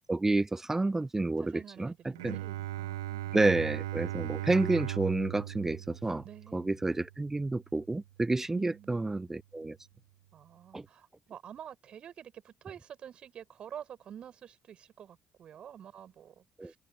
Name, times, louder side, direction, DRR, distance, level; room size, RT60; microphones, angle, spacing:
voice 1, 0.1-2.4 3.3-6.2 6.5-9.8 10.7-10.9 16.6-16.7, right 2 dB, 20° right, 0.4 m, -30 dB
voice 2, 1.4-3.4 6.2-6.8 8.5-9.1 10.3-16.8, right 9 dB, 55° right, 7.5 m, -49 dB
Bowed string instrument, 2.2-7.9, right 14 dB, 80° right, 0.8 m, -38 dB
figure-of-eight pair, 45°, 2 cm